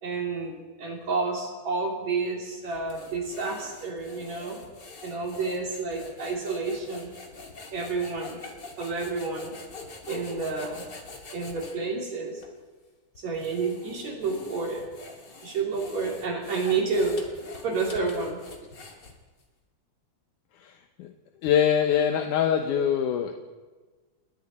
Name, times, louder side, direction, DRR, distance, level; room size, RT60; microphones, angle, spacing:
voice 1, 0.0-4.6 5.0-7.1 7.7-8.4 8.8-9.6 10.1-10.8 11.3-12.4 13.2-14.9 15.4-17.2 17.6-18.4, right 4 dB, 55° right, -1 dB, 4.4 m, -30 dB
sound 1, 2.6-11.8 12.4-12.5 13.1-19.4, left 3 dB, 35° left, 2.7 m, -45 dB
voice 2, 21.4-23.3, left 9 dB, 75° left, 5 dB, 2.5 m, -23 dB
30.0 x 20.5 x 4.3 m, 1.3 s
omnidirectional pair, 3.7 m